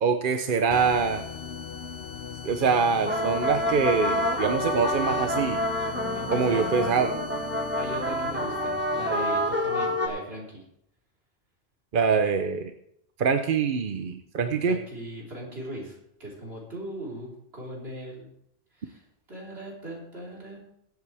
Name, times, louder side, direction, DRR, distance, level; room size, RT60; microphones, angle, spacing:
voice 1, 0.0-1.2 2.4-5.6 6.3-7.1 11.9-12.7 13.2-14.8, right 5 dB, 55° right, 7 dB, 0.9 m, -24 dB
sound 1, 0.7-10.1, left 6 dB, 80° left, 1.0 m, -40 dB
sound 2, 2.9-10.1, left 1 dB, 10° right, 1.7 m, -28 dB
voice 2, 6.1-7.4 7.8-10.6 14.6-18.3 18.7-20.6, equal, 75° right, -4 dB, 4.3 m, -39 dB
22.0 x 8.0 x 3.4 m, 0.76 s
omnidirectional pair, 1.1 m